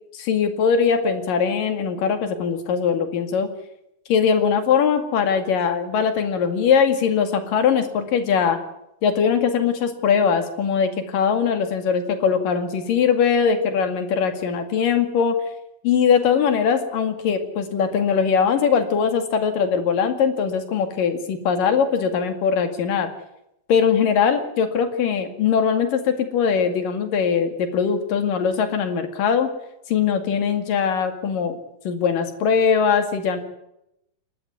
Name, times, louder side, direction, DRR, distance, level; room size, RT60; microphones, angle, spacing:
voice 1, 0.1-3.5 4.1-8.6 9.0-15.4 15.8-23.1 23.7-29.5 29.9-31.6 31.9-33.4, left 6 dB, 75° left, 7 dB, 3.8 m, -21 dB
28.5 x 12.0 x 9.5 m, 0.83 s
omnidirectional pair, 4.0 m